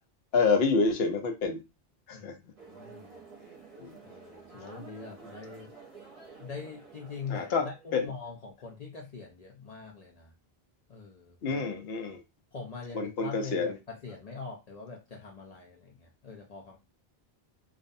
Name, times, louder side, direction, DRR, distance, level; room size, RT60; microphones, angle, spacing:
voice 1, 0.3-1.6 2.1-2.3 3.8-4.0 7.3-8.1 11.4-12.2 12.9-13.8, left 4 dB, 80° left, 0.9 m, -28 dB
voice 2, 2.1-3.2 3.8-5.7 6.4-10.3 10.9-11.6 12.5-16.8, left 5 dB, 55° left, 0.5 m, -43 dB
sound 1, 2.6-8.0, right 4 dB, 40° right, 0.7 m, -50 dB
2.5 x 2.0 x 2.6 m
omnidirectional pair, 1.0 m